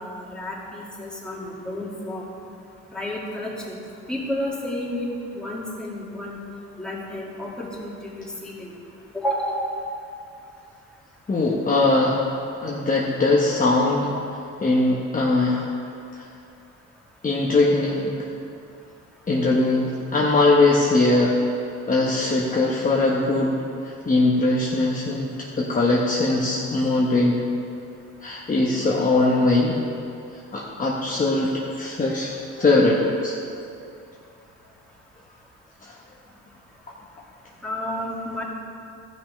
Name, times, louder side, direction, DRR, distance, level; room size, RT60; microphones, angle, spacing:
voice 1, 0.0-2.2 2.9-3.8 4.1-5.1 5.3-6.5 6.8-7.9 8.2-8.7 9.1-9.7 37.6-38.4, left 1 dB, 5° left, -5 dB, 2.6 m, -31 dB
voice 2, 11.3-12.3 12.6-14.2 14.6-15.7 16.2-16.3 17.2-18.1 19.3-21.4 21.9-23.6 23.8-27.5 28.2-29.8 30.5-33.3 35.8-35.9, left 2 dB, 25° left, -3 dB, 1.1 m, -21 dB
14.0 x 5.8 x 5.3 m, 2.6 s
cardioid pair, 90°, 30 cm